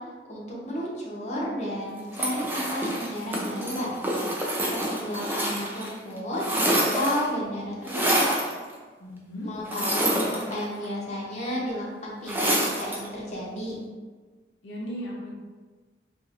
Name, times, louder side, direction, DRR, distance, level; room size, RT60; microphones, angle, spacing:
voice 1, 0.3-3.9 4.3-8.2 9.4-13.8, equal, 40° left, -5 dB, 0.8 m, -32 dB
sound 1, 2.1-5.9 6.2-7.3 7.9-8.5 9.7-10.9 12.3-13.1, right 1 dB, 10° right, 0.5 m, -27 dB
voice 2, 9.0-9.5 14.6-15.3, equal, 90° left, -3 dB, 0.7 m, -36 dB
4.2 x 2.6 x 2.4 m, 1.4 s
head